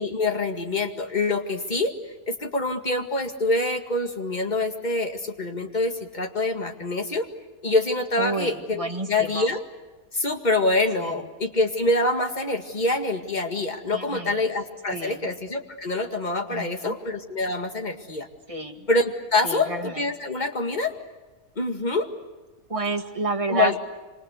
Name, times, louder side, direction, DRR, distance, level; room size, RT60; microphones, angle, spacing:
voice 1, 0.0-1.9 2.3-7.2 7.6-9.6 10.1-18.3 18.9-20.9 21.6-22.1 23.5-23.8, left 2 dB, 30° left, 5 dB, 2.1 m, -25 dB
voice 2, 8.2-9.5 11.0-11.1 13.9-14.4 14.9-15.3 16.5-17.0 18.5-18.9 19.4-19.9 20.2-20.3 22.7-23.8, right 3 dB, 25° right, 4 dB, 2.1 m, -30 dB
26.5 x 26.5 x 8.2 m, 1.2 s
omnidirectional pair, 1.5 m